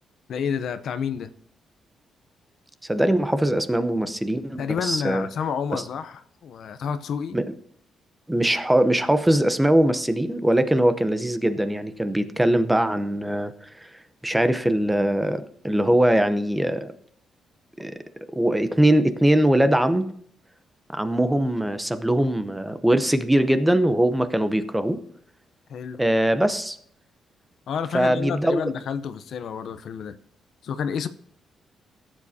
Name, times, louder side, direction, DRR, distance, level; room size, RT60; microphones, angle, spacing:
voice 1, 0.3-1.3 4.6-7.4 25.7-26.0 27.7-30.2 30.6-31.1, left 7 dB, 65° left, 0.7 m, -29 dB
voice 2, 2.9-5.3 5.7-5.8 7.3-7.4 8.3-13.5 14.2-16.9 17.8-18.0 18.3-20.1 20.9-25.0 26.0-26.8 27.9-28.6, right 1 dB, 5° right, 0.8 m, -21 dB
16.0 x 7.4 x 2.8 m
cardioid pair, 115°, 0 cm